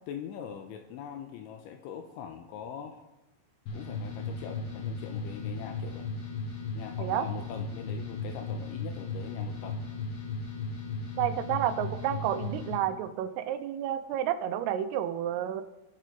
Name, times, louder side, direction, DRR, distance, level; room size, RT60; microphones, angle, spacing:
voice 1, 0.1-3.0 3.7-6.1 6.7-9.8, left 8 dB, 85° left, 6 dB, 2.8 m, -42 dB
sound 1, 3.7-12.8, left 3 dB, 60° left, 3.8 m, -36 dB
voice 2, 11.2-15.6, right 10 dB, 80° right, 10 dB, 3.2 m, -30 dB
21.0 x 7.6 x 3.8 m, 0.97 s
omnidirectional pair, 6.0 m